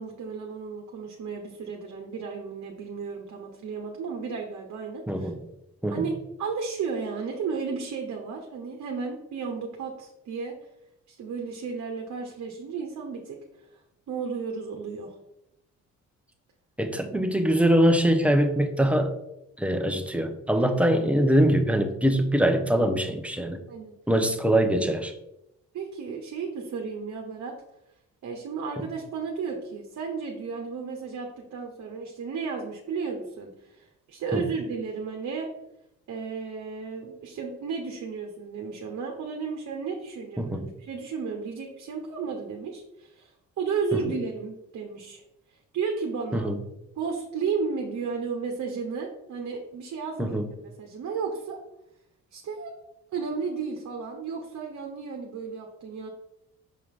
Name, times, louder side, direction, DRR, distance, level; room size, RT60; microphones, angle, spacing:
voice 1, 0.0-5.3 5.9-6.1 6.4-10.5 11.1-13.4 14.1-15.1 20.8-21.1 23.7-23.9 25.7-27.5 28.2-35.5 36.1-43.3 43.6-45.2 45.7-46.5 47.0-51.6 52.3-52.7 53.1-56.1, right 5 dB, 65° right, 1 dB, 1.1 m, -33 dB
voice 2, 5.1-5.4 5.8-6.0 16.8-19.1 19.6-23.6 24.1-25.1 34.3-34.4 40.4-40.6 46.3-46.6 50.2-50.5, right 1 dB, 5° right, 5 dB, 0.9 m, -23 dB
6.4 x 4.6 x 3.7 m, 0.85 s
cardioid pair, 90°, 30 cm